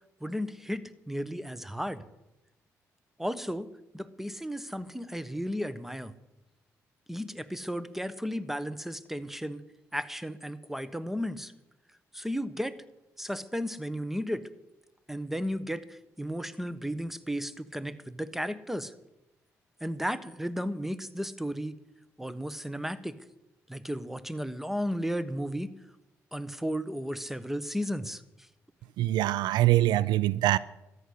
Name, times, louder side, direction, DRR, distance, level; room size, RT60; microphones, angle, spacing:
voice 1, 0.2-2.0 3.2-3.7 3.9-6.1 7.1-9.6 9.9-11.5 12.1-12.8 13.2-14.5 15.1-18.9 19.8-21.8 22.2-23.2 23.7-25.7 26.3-28.5, equal, 5° right, 1.2 m, -34 dB
voice 2, 29.0-30.6, right 15 dB, 75° right, 0.4 m, -24 dB
14.0 x 9.8 x 8.1 m
supercardioid pair, 55°, 7 cm